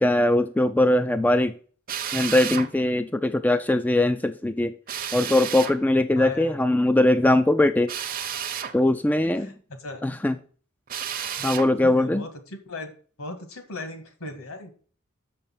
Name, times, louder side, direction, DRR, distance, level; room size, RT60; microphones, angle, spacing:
voice 1, 0.0-1.5 2.1-4.7 5.1-7.9 8.7-9.5 10.0-10.3 11.4-12.2, left 1 dB, 10° left, 0.3 m, -21 dB
Drill, 1.9-2.7 4.9-5.8 7.9-8.8 10.9-11.7, right 8 dB, 40° right, 0.8 m, -31 dB
voice 2, 6.1-6.6 9.2-9.5 9.8-10.0 11.4-12.9 13.2-14.7, left 2 dB, 70° left, 1.9 m, -38 dB
6.6 x 5.5 x 7.2 m
head